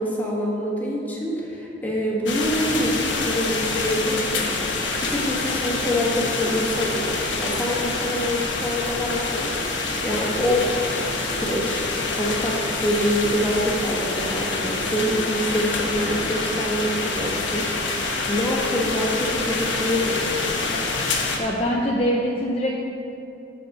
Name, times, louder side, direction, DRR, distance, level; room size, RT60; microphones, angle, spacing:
voice 1, 0.0-4.5 5.0-11.0 11.3-20.8, equal, 10° left, -4 dB, 1.4 m, -26 dB
sound 1, 2.3-21.4, left 3 dB, 85° left, 1.1 m, -26 dB
voice 2, 21.4-22.8, equal, 30° left, -3 dB, 0.7 m, -23 dB
12.5 x 4.3 x 5.4 m, 2.8 s
head